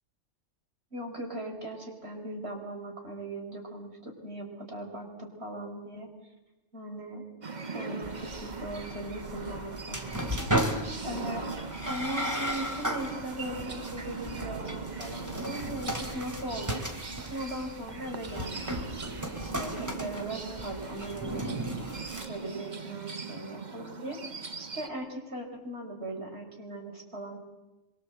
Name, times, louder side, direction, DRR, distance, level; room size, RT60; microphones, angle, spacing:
voice 1, 0.9-6.1 6.7-7.2 7.7-10.4 11.0-11.6 11.8-16.8 17.2-27.4, right 1 dB, 55° right, 3 dB, 4.9 m, -39 dB
sound 1, 7.4-24.9, right 4 dB, 35° right, 1.3 m, -40 dB
sound 2, 8.0-22.3, equal, 15° right, 2.6 m, -36 dB
25.0 x 23.5 x 7.7 m, 1.0 s
omnidirectional pair, 1.3 m